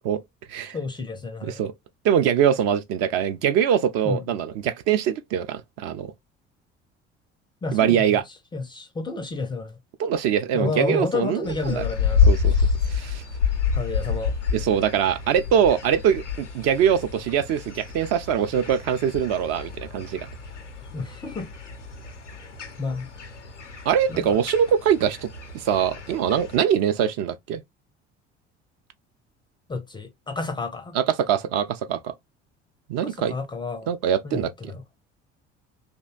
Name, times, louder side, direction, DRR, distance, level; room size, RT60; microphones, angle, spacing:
voice 1, 0.7-1.6 4.0-4.2 7.6-8.2 8.5-9.7 10.5-12.3 12.6-12.7 13.7-14.3 20.9-21.5 22.8-23.1 24.1-24.4 29.7-31.0 33.0-33.9 34.2-34.8, left 3 dB, 15° left, 0.4 m, -30 dB
voice 2, 1.4-1.7 2.0-6.1 7.7-8.2 10.0-11.8 12.3-12.6 12.9-13.2 14.5-20.3 23.9-25.3 25.5-27.6 30.9-32.1 32.9-33.3 33.9-34.7, right 8 dB, 45° right, 0.4 m, -23 dB
sound 1, 11.4-26.6, left 5 dB, 90° left, 0.5 m, -28 dB
2.6 x 2.1 x 2.3 m
figure-of-eight pair, 60°, 35 cm